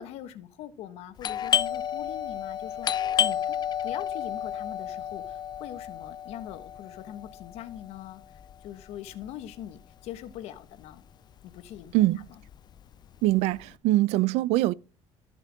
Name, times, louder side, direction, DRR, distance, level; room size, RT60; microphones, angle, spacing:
voice 1, 0.0-3.6 3.8-8.2 8.6-11.0 11.5-12.0, left 11 dB, 80° left, 1.4 m, -42 dB
Doorbell, 1.2-10.6 10.8-10.9 11.6-11.9 12.2-13.6, left 10 dB, 40° left, 0.4 m, -31 dB
voice 2, 11.9-12.3 13.2-14.7, right 17 dB, 85° right, 0.5 m, -23 dB
14.0 x 6.8 x 3.6 m
cardioid pair, 115°, 11 cm